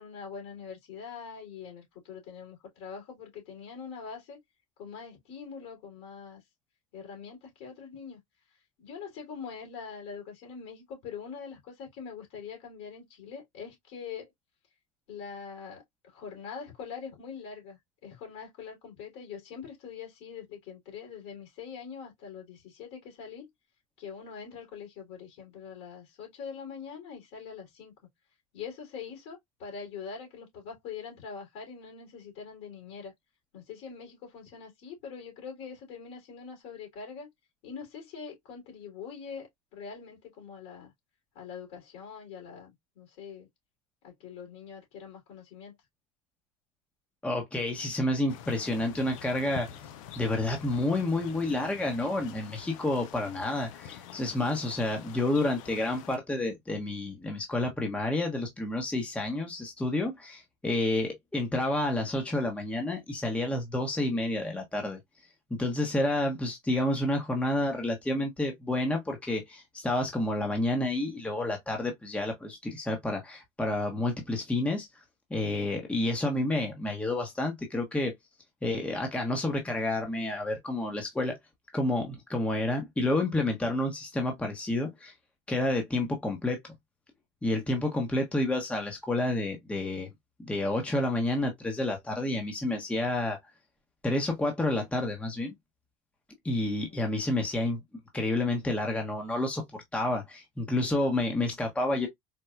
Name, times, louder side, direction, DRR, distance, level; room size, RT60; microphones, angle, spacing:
voice 1, 0.0-4.4 4.8-6.4 6.9-8.2 8.8-14.3 15.1-23.5 24.0-27.9 28.5-33.1 33.5-37.3 37.6-40.9 41.3-43.5 44.0-45.8 96.8-97.0, left 6 dB, 65° left, 2.7 m, -43 dB
voice 2, 47.2-49.7 50.2-65.0 65.5-74.9 75.3-78.1 78.6-81.4 81.7-85.1 85.5-86.6 87.4-90.1 90.4-93.4 94.0-95.5 96.4-97.8 98.1-102.1, left 1 dB, 5° left, 0.9 m, -29 dB
sound 1, 48.3-56.2, left 9 dB, 80° left, 0.6 m, -46 dB
4.3 x 2.3 x 2.2 m
supercardioid pair, 115°, 17 cm